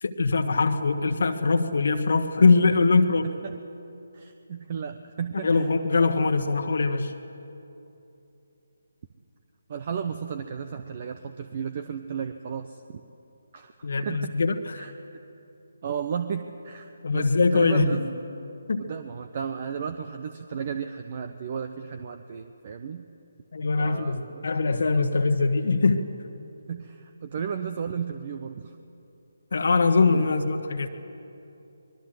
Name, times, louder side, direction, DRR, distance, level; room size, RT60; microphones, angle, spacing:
voice 1, 0.0-3.3 5.4-7.1 13.8-14.9 17.0-18.1 18.7-18.8 23.5-26.1 29.5-30.9, left 4 dB, 55° left, 5 dB, 1.4 m, -22 dB
voice 2, 2.6-3.0 3.2-3.6 4.1-5.7 9.7-13.0 13.5-14.4 14.7-14.9 15.8-18.0 18.8-23.0 23.8-24.4 26.7-28.8 30.1-30.3, right 7 dB, 40° right, 9 dB, 0.9 m, -34 dB
24.5 x 22.0 x 7.9 m, 2.8 s
figure-of-eight pair, 145°, 0 cm